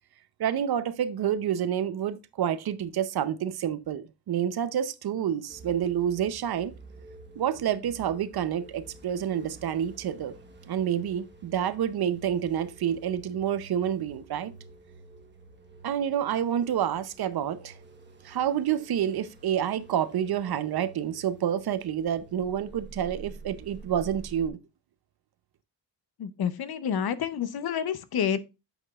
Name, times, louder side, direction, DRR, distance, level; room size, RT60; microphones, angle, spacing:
voice 1, 0.4-6.7 7.4-10.3 10.7-14.5 15.8-17.8 18.2-24.6, right 9 dB, 60° right, 0.7 m, -28 dB
sound 1, 5.5-24.5, right 3 dB, 25° right, 1.2 m, -49 dB
voice 2, 26.2-28.4, left 8 dB, 60° left, 0.7 m, -29 dB
7.9 x 5.9 x 2.4 m
wide cardioid pair, 130°, 43 cm